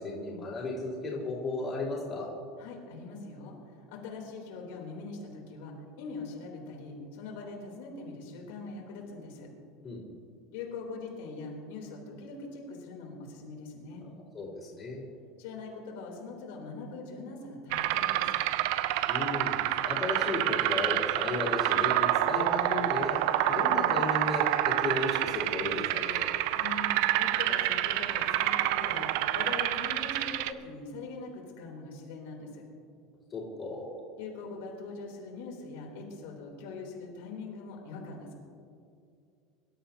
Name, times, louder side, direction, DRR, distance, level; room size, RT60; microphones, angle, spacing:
voice 1, 0.0-2.3 9.8-10.0 14.3-15.0 19.1-23.2 23.5-26.3 33.3-33.9, left 2 dB, 20° left, -8 dB, 3.6 m, -34 dB
voice 2, 2.6-9.5 10.5-14.1 15.4-18.4 26.5-32.6 34.2-38.4, left 3 dB, 75° left, -1 dB, 3.5 m, -42 dB
sound 1, 17.7-30.5, right 14 dB, 60° right, 0.5 m, -28 dB
24.0 x 12.5 x 2.9 m, 2.4 s
cardioid pair, 175°, 0 cm